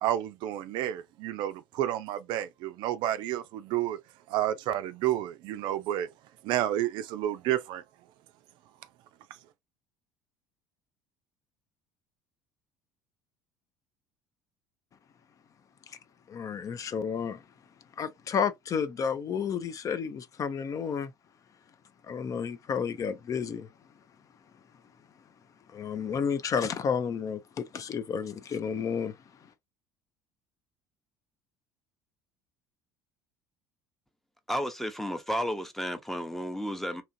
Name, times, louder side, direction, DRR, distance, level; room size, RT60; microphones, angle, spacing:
voice 1, 0.0-4.0 4.3-6.1 6.4-7.8, right 12 dB, 60° right, 0.4 m, -30 dB
voice 2, 16.3-17.4 18.0-21.1 22.0-23.7 25.7-29.2, left 6 dB, 40° left, 0.4 m, -31 dB
voice 3, 34.5-37.0, equal, 5° left, 0.7 m, -32 dB
2.8 x 2.4 x 2.6 m
hypercardioid pair, 65°, 9 cm